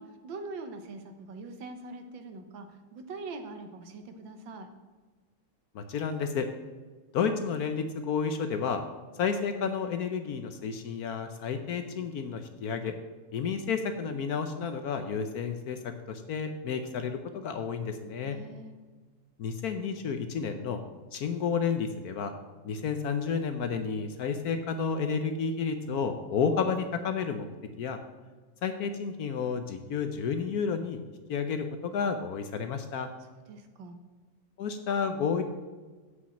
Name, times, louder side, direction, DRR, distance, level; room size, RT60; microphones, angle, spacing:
voice 1, 0.0-4.7 18.3-18.7 33.5-34.0, right 3 dB, 80° right, 7 dB, 1.7 m, -43 dB
voice 2, 5.7-6.5 7.1-8.8 9.2-12.9 13.3-18.4 19.4-20.8 21.1-22.3 22.6-27.5 27.8-28.0 28.6-31.0 31.3-33.1 34.6-35.4, left 6 dB, 65° left, 7 dB, 1.0 m, -31 dB
7.9 x 6.1 x 7.2 m, 1.3 s
omnidirectional pair, 2.0 m